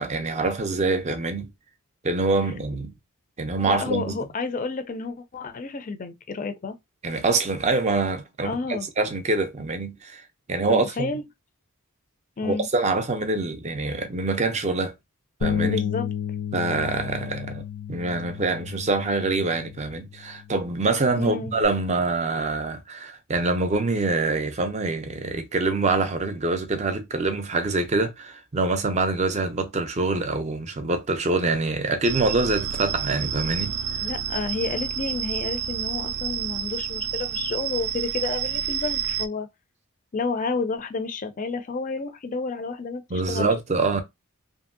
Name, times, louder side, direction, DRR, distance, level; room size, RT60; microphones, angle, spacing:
voice 1, 0.0-1.5 2.0-2.9 3.4-4.2 7.0-10.2 10.5-11.1 12.4-14.9 15.4-15.8 16.5-17.6 17.9-33.7 43.1-44.0, right 3 dB, 30° right, 0.5 m, -25 dB
voice 2, 3.7-6.8 8.4-8.9 10.7-11.2 12.4-12.7 15.6-16.1 21.2-21.5 34.0-39.5 40.1-43.5, left 4 dB, 35° left, 0.4 m, -30 dB
Bass guitar, 15.4-21.7, left 7 dB, 85° left, 0.7 m, -32 dB
sound 1, 32.0-39.3, right 9 dB, 90° right, 0.4 m, -29 dB
2.8 x 2.6 x 2.6 m
head